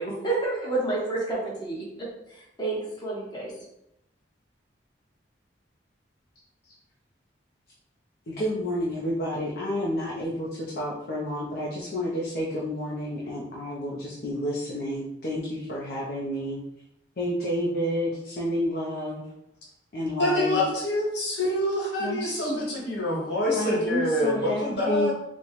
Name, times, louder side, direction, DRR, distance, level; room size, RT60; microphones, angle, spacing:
voice 1, 0.0-1.8 2.3-3.5, right 3 dB, 25° left, -5 dB, 0.9 m, -29 dB
voice 2, 8.3-16.6 17.2-19.3 19.9-20.6 22.0-22.5 23.6-25.1, equal, 55° left, -5 dB, 0.6 m, -30 dB
voice 3, 20.2-25.1, left 1 dB, 75° left, -3 dB, 1.1 m, -26 dB
4.2 x 2.1 x 3.0 m, 0.83 s
head